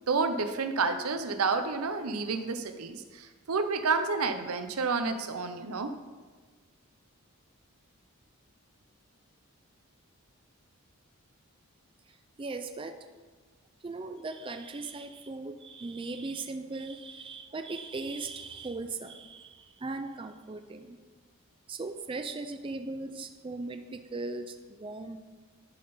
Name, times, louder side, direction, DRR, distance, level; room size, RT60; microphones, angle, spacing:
voice 1, 0.1-5.9, right 4 dB, 90° right, 9 dB, 0.7 m, -30 dB
voice 2, 12.4-13.0 13.8-21.0 21.7-25.2, right 3 dB, 25° right, 7 dB, 0.4 m, -38 dB
11.0 x 5.7 x 3.9 m, 1.4 s
head